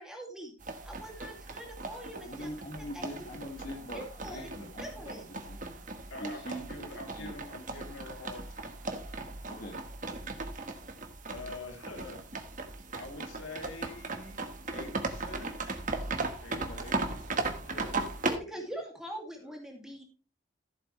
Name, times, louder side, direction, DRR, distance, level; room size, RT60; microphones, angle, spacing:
voice 1, 0.0-2.5 2.9-3.0 3.9-4.5 4.8-5.2 18.2-20.0, right 1 dB, 5° right, 0 dB, 2.4 m, -43 dB
sound 1, 0.6-18.4, right 3 dB, 40° right, 1.4 m, -37 dB
voice 2, 2.2-5.0 5.3-5.6 6.2-7.3 9.5-9.8 16.5-16.8, equal, 40° left, -2 dB, 2.1 m, -43 dB
voice 3, 6.1-8.8 11.3-12.2 12.9-14.4 14.7-15.5 16.4-18.4 19.4-19.5, left 2 dB, 75° left, 3 dB, 3.1 m, -46 dB
14.5 x 7.9 x 3.2 m, 0.35 s
head